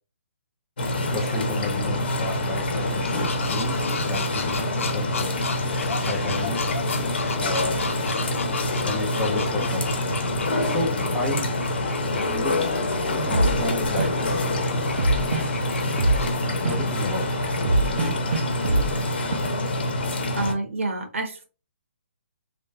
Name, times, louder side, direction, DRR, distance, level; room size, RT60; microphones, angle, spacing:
sound 1, 0.8-20.5, left 1 dB, 50° left, 1.0 m, -26 dB
voice 1, 1.1-3.8 4.0-5.4 6.1-6.6 7.4-7.8 8.8-9.9 10.6-11.5 12.3-12.7 13.1-13.3 13.6-14.4 16.6-17.3, left 2 dB, ahead, 0.5 m, -31 dB
sound 2, 2.0-16.4, left 4 dB, 80° left, 0.8 m, -35 dB
sound 3, 2.8-19.4, right 2 dB, 50° right, 0.6 m, -31 dB
voice 2, 20.3-21.4, right 2 dB, 75° right, 1.3 m, -28 dB
3.3 x 2.4 x 4.3 m
hypercardioid pair, 180°, 7 cm